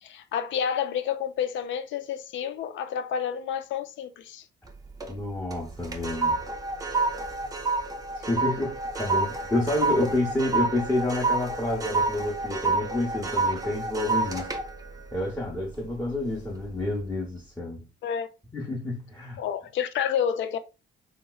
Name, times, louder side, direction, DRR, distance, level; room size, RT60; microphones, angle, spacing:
voice 1, 0.0-4.4 18.0-18.3 19.4-20.6, left 8 dB, 70° left, 0.4 m, -29 dB
sound 1, 4.7-5.2 5.5-16.1 16.5-16.8, right 3 dB, 20° right, 0.6 m, -29 dB
voice 2, 5.1-6.4 8.1-14.5 15.1-17.8 18.5-19.4, left 2 dB, 10° left, 0.8 m, -29 dB
2.9 x 2.9 x 2.3 m
cardioid pair, 90°, 20 cm